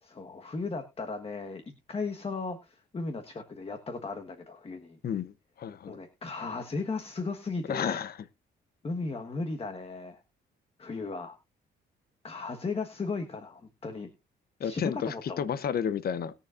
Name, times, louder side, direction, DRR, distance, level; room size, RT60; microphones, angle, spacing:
voice 1, 0.0-5.0 5.9-8.0 8.8-10.2 10.8-11.3 12.2-14.1 14.6-15.6, left 3 dB, 30° left, 1.4 m, -36 dB
voice 2, 5.0-6.0 7.7-8.1 14.6-16.3, left 8 dB, 50° left, 0.8 m, -31 dB
20.5 x 7.0 x 2.5 m
cardioid pair, 90°, 20 cm